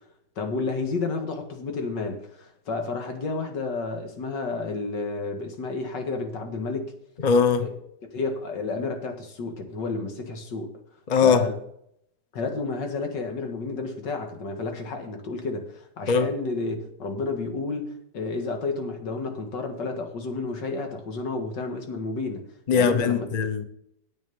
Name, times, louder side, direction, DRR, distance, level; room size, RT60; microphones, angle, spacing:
voice 1, 0.4-6.9 7.6-7.7 8.1-10.7 11.2-11.6 12.3-22.4 22.7-23.3, left 3 dB, 85° left, 2.3 m, -31 dB
voice 2, 7.2-7.7 11.1-11.4 16.1-16.3 22.7-23.6, left 6 dB, 35° left, 0.7 m, -20 dB
9.9 x 8.5 x 5.4 m
omnidirectional pair, 1.9 m